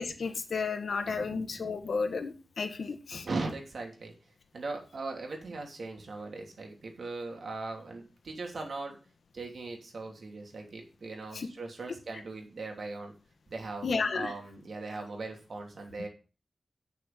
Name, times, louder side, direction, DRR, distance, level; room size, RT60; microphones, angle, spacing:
voice 1, 0.0-3.2 11.3-11.5 13.8-14.3, left 4 dB, 85° left, 7 dB, 1.5 m, -32 dB
voice 2, 1.0-1.7 3.1-4.1 4.5-9.0 9.3-13.1 13.5-16.1, right 3 dB, 75° right, 2 dB, 3.0 m, -39 dB
8.7 x 6.7 x 6.8 m, 0.34 s
wide cardioid pair, 105°, 0 cm